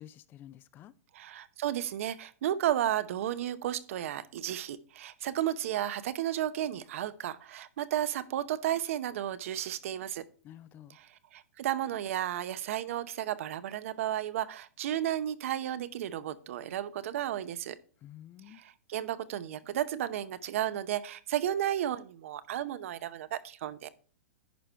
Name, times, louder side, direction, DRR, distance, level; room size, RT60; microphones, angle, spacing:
voice 1, 0.0-0.9 10.4-11.0 18.0-18.6, left 12 dB, 25° left, 0.4 m, -50 dB
voice 2, 1.1-10.2 10.9-17.8 18.5-23.9, right 11 dB, 65° right, 0.7 m, -33 dB
10.5 x 4.8 x 4.5 m
hypercardioid pair, 135°, 8 cm